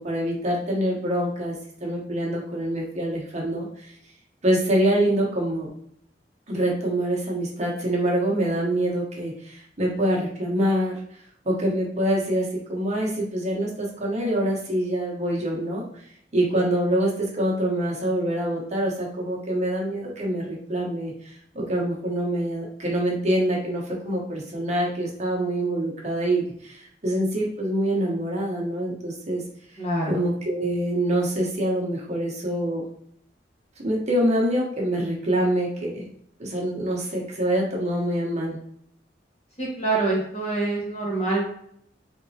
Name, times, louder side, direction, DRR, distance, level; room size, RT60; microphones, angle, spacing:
voice 1, 0.0-1.5 1.8-3.9 4.4-5.7 6.5-11.0 11.4-16.0 16.3-29.4 30.1-32.8 33.8-36.1 36.4-38.6, right 1 dB, 40° right, -3 dB, 0.9 m, -25 dB
voice 2, 29.8-30.2 39.6-41.5, right 2 dB, 40° left, -3 dB, 1.3 m, -25 dB
3.5 x 2.9 x 2.8 m, 0.69 s
head